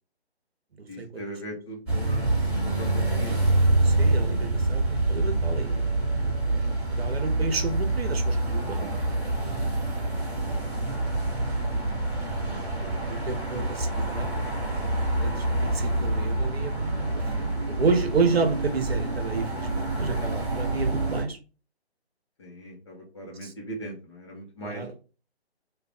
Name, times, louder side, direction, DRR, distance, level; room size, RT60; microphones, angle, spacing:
voice 1, 0.9-3.6 8.8-9.4 11.5-12.9 20.1-20.4 22.4-24.9, right 1 dB, 25° left, -1 dB, 0.7 m, -41 dB
sound 1, 1.9-21.2, right 2 dB, 5° right, 1.3 m, -26 dB
voice 2, 3.8-5.8 6.5-8.9 12.3-14.3 15.2-21.4 23.4-23.5 24.6-24.9, right 4 dB, 65° right, 6 dB, 0.9 m, -31 dB
3.2 x 2.3 x 3.7 m, 0.34 s
figure-of-eight pair, 155°, 33 cm